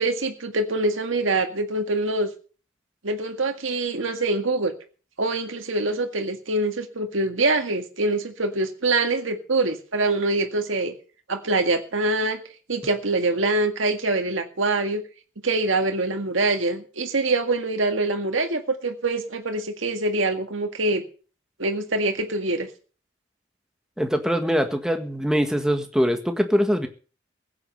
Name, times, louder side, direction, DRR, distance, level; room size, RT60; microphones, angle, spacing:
voice 1, 0.0-2.3 3.0-4.7 5.2-10.9 11.3-12.4 12.7-15.0 15.4-21.0 21.6-22.7, right 2 dB, 90° right, 5 dB, 1.8 m, -24 dB
voice 2, 24.0-26.9, equal, 5° right, 5 dB, 1.6 m, -23 dB
16.0 x 8.5 x 6.6 m, 0.39 s
head